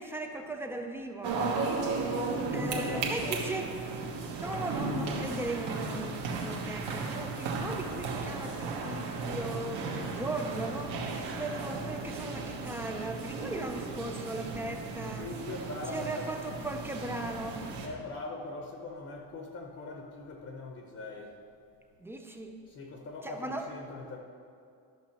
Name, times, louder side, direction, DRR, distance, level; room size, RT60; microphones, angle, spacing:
voice 1, 0.0-1.6 2.5-3.7 4.4-11.0 11.3-15.3 15.9-17.6 22.0-22.6 23.2-23.7, right 2 dB, 5° right, 4 dB, 0.3 m, -38 dB
sound 1, 1.2-17.9, right 3 dB, 70° right, 1.5 m, -35 dB
voice 2, 2.5-3.7 15.0-16.4 17.8-21.4 22.7-24.2, left 2 dB, 35° left, 2 dB, 0.8 m, -41 dB
12.5 x 6.4 x 4.5 m, 2.5 s
cardioid pair, 165°, 43 cm